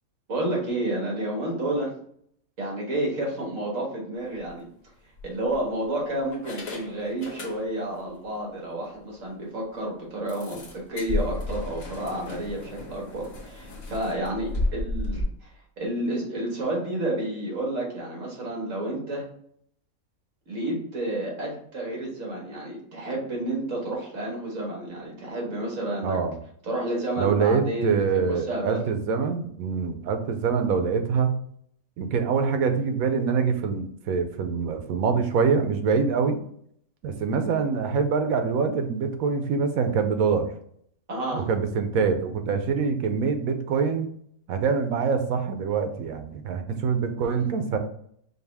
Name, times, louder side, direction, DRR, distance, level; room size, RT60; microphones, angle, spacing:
voice 1, 0.3-1.9 2.6-4.7 5.2-15.5 15.8-19.3 20.5-26.2 26.6-28.8 41.1-41.5, right 1 dB, 65° right, -2 dB, 1.8 m, -30 dB
sound 1, 4.3-4.5 5.2-5.8 6.3-8.0 8.3-8.4 8.8-8.9 9.3-9.4 10.3-15.2, left 2 dB, 75° left, 1.4 m, -33 dB
voice 2, 26.0-26.3 27.2-31.3 32.0-36.4 37.0-40.5 41.3-44.1 44.5-47.8, right 5 dB, 90° right, 7 dB, 1.1 m, -25 dB
5.3 x 2.4 x 3.4 m, 0.66 s
omnidirectional pair, 1.5 m